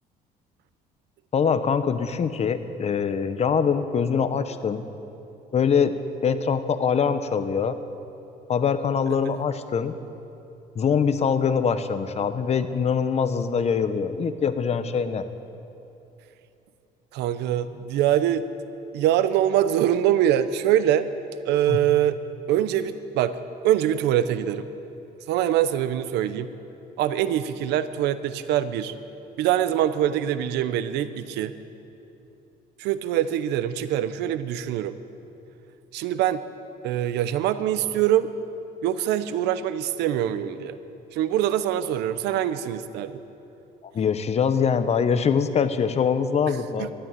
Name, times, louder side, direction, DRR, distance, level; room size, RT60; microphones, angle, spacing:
voice 1, 1.3-4.9 5.5-5.9 6.2-7.8 8.5-10.0 10.7-15.2 21.7-21.8 43.9-46.9, left 6 dB, 40° left, 11 dB, 0.9 m, -23 dB
voice 2, 17.1-18.4 18.9-21.1 21.5-22.2 22.5-23.4 23.6-24.7 25.3-26.5 27.0-28.9 29.4-31.5 32.8-35.0 35.9-36.4 36.8-38.3 38.8-40.8 41.1-43.2 46.8-46.9, right 11 dB, 85° right, 13 dB, 0.7 m, -24 dB
12.5 x 11.0 x 9.0 m, 2.9 s
cardioid pair, 110°, 17 cm